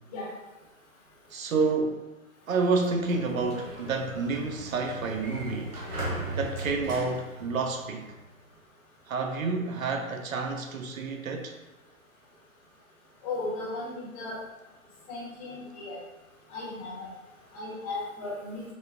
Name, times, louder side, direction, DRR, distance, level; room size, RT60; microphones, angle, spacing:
voice 1, 1.3-2.0 2.5-5.7 6.4-8.1 9.1-11.5, right 4 dB, 70° right, 4 dB, 0.6 m, -29 dB
Sliding door, 2.6-8.2, right 1 dB, 85° right, 1.0 m, -38 dB
voice 2, 13.2-14.4 15.1-16.0 16.5-17.1 17.5-18.6, left 2 dB, 30° left, -6 dB, 1.0 m, -36 dB
5.0 x 2.1 x 2.4 m, 1.1 s
hypercardioid pair, 135°, 42 cm